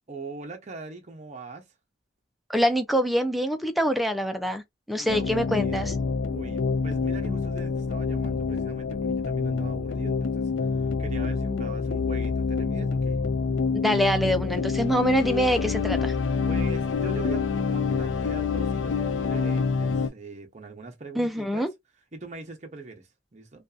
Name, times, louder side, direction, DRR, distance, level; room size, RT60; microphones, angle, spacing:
voice 1, 0.1-1.7 4.9-5.8 6.2-13.2 16.5-21.7 22.1-23.6, right 3 dB, 40° right, 0.7 m, -42 dB
voice 2, 2.5-4.6 4.9-5.9 13.7-16.1 21.2-21.7, equal, ahead, 0.4 m, -25 dB
sound 1, 5.1-20.1, left 5 dB, 80° left, 0.4 m, -27 dB
2.6 x 2.4 x 2.2 m
head